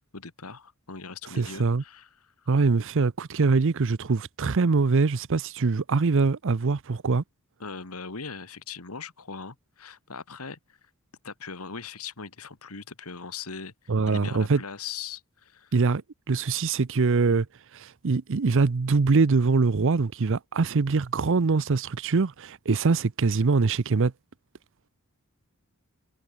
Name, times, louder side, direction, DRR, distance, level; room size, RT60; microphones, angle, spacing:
voice 1, 0.1-2.3 7.6-10.6 11.2-13.7 14.1-15.7, left 5 dB, 80° left, 2.0 m, -40 dB
voice 2, 1.3-1.8 2.5-7.2 13.9-14.6 15.7-16.0 16.3-17.5 17.7-24.1, right 4 dB, 60° right, 0.6 m, -23 dB
head